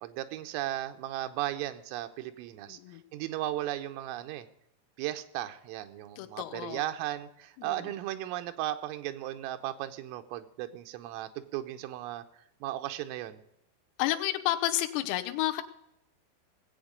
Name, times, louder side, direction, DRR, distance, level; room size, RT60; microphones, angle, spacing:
voice 1, 0.0-2.8 3.1-4.5 5.0-12.3 12.6-13.4, right 14 dB, 80° right, 7 dB, 3.5 m, -36 dB
voice 2, 2.7-3.0 6.2-6.8 7.6-7.9 14.0-15.6, left 15 dB, 90° left, 6 dB, 3.7 m, -31 dB
19.5 x 8.1 x 5.2 m, 0.78 s
omnidirectional pair, 5.9 m